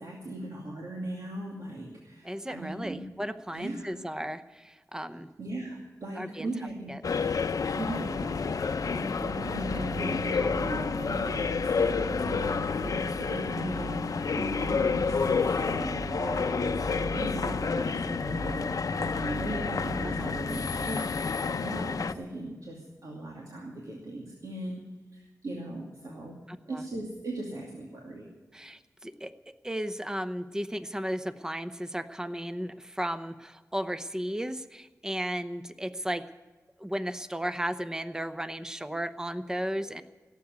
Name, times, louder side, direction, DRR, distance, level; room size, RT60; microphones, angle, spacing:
voice 1, 0.0-3.0 3.5-4.0 5.4-7.1 7.7-8.6 8.9-24.8 25.1-26.4 26.7-28.3 39.8-40.0, right 1 dB, 75° right, -2 dB, 2.6 m, -38 dB
voice 2, 2.2-5.3 6.1-6.5 6.9-7.0 10.3-10.5 20.0-20.4 26.5-26.8 28.5-29.3 29.6-36.3 36.8-40.0, equal, 10° right, 11 dB, 0.8 m, -35 dB
sound 1, 7.0-22.1, left 5 dB, 75° left, 0.6 m, -30 dB
sound 2, 8.2-20.9, right 2 dB, 40° right, 4.1 m, -41 dB
17.5 x 8.2 x 9.6 m, 1.2 s
wide cardioid pair, 60°, 6 cm